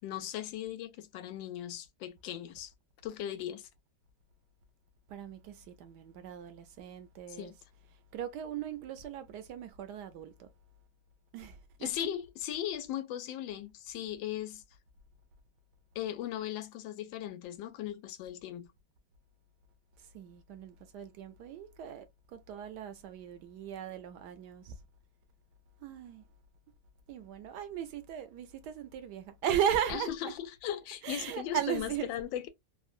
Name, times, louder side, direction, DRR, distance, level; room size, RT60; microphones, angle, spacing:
voice 1, 0.0-2.7 3.0-3.7 7.3-7.5 11.8-14.6 15.9-18.7 29.9-32.5, left 11 dB, 85° left, 1.3 m, -38 dB
voice 2, 5.1-7.5 8.1-10.5 11.3-11.9 20.0-24.8 25.8-26.2 27.1-30.1 31.0-32.1, right 9 dB, 75° right, 1.0 m, -37 dB
3.7 x 2.1 x 2.4 m
omnidirectional pair, 2.0 m